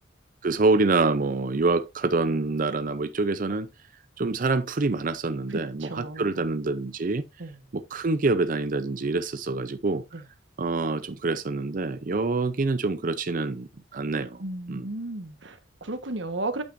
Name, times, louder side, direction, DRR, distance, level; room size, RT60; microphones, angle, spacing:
voice 1, 0.4-3.7 4.2-7.2 7.7-10.0 10.6-14.4 14.7-14.9, right 3 dB, 50° right, 0.6 m, -26 dB
voice 2, 5.5-6.5 7.4-7.6 10.1-10.2 14.4-16.6, right 2 dB, 80° right, 1.4 m, -34 dB
8.8 x 8.5 x 2.6 m
head